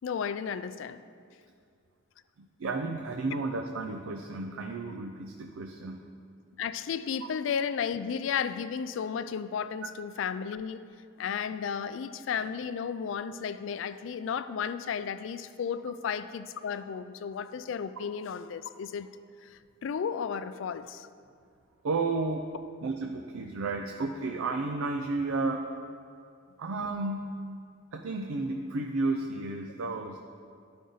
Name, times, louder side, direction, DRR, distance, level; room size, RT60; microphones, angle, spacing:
voice 1, 0.0-1.0 6.6-10.9 11.2-19.1 19.4-21.1, left 7 dB, 70° left, 12 dB, 0.3 m, -33 dB
voice 2, 2.4-6.0 21.8-22.5 22.8-25.6 26.6-27.3 27.9-30.2, right 3 dB, 90° right, 3 dB, 0.5 m, -32 dB
12.0 x 5.2 x 3.9 m, 2.3 s
head